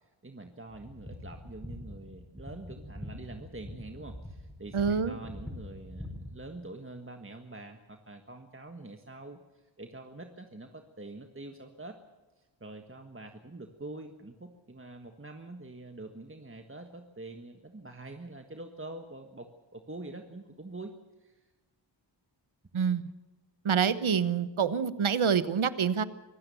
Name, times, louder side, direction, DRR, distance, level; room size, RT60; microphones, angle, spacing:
voice 1, 0.0-12.0 12.4-20.9 21.2-21.5, right 2 dB, 25° right, 5 dB, 1.5 m, -45 dB
sound 1, 0.7-6.4, left 1 dB, 5° left, 6.1 m, -44 dB
voice 2, 4.7-5.2 22.7-23.1 23.6-26.0, right 7 dB, 85° right, 14 dB, 1.1 m, -27 dB
24.5 x 16.5 x 7.0 m, 1.2 s
wide cardioid pair, 60°, 47 cm